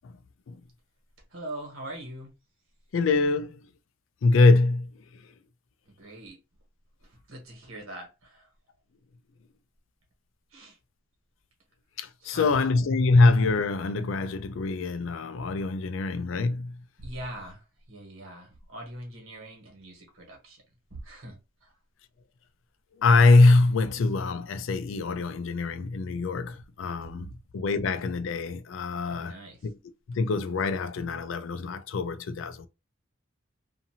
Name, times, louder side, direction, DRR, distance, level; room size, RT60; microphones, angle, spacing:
voice 1, 1.3-2.3 6.0-6.4 7.0-8.5 10.5-10.8 12.2-12.5 17.0-20.6 20.9-21.7 29.0-29.6, right 1 dB, 90° right, 1.3 m, -42 dB
voice 2, 2.9-3.7 4.2-4.9 12.0-16.8 23.0-29.4 29.6-29.7 30.1-32.7, left 3 dB, 70° left, 0.4 m, -24 dB
2.7 x 2.5 x 2.7 m
head